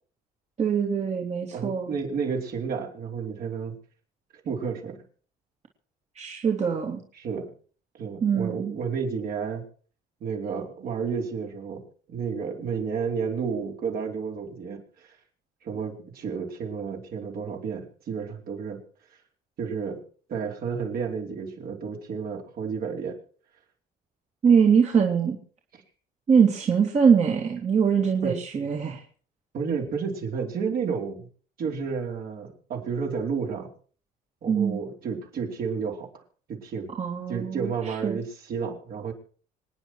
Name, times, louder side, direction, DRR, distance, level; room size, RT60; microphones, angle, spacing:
voice 1, 0.6-1.9 6.1-7.0 8.2-8.7 24.4-25.4 26.3-29.0 34.5-34.8 36.9-38.2, right 6 dB, 40° right, 1 dB, 2.6 m, -23 dB
voice 2, 1.5-3.7 4.4-5.0 7.2-7.5 8.0-9.6 10.2-11.8 12.1-15.1 15.6-18.8 19.6-20.0 20.3-23.2 28.2-28.4 29.5-31.3 31.6-33.7 34.4-36.1 36.5-36.9 37.3-39.1, right 6 dB, 60° right, 0 dB, 4.8 m, -31 dB
26.0 x 9.8 x 4.6 m, 0.43 s
cardioid pair, 110°, 17 cm